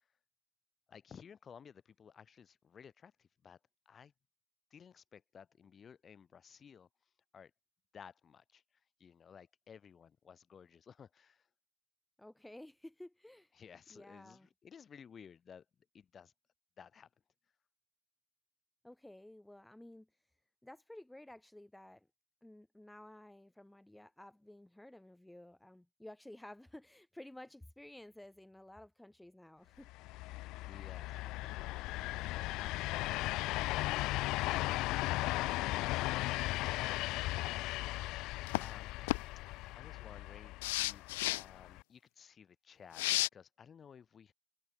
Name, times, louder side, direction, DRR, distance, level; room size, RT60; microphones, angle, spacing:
voice 1, 0.9-3.6 3.9-4.1 4.7-6.9 7.3-7.5 7.9-8.6 9.0-11.5 13.5-15.7 15.9-16.3 16.8-17.1 30.5-33.2 36.9-38.9 39.7-43.0 43.3-44.3, left 7 dB, 30° left, 5.5 m, -57 dB
voice 2, 12.2-13.5 13.9-14.5 18.8-20.1 20.6-22.1 22.4-29.9, left 1 dB, 5° left, 3.6 m, -54 dB
sound 1, 29.9-41.8, left 19 dB, 60° left, 1.8 m, -37 dB
sound 2, 38.5-38.7 39.1-39.2 40.6-41.4 42.9-43.3, left 20 dB, 85° left, 1.5 m, -32 dB
supercardioid pair, 115°, 0 cm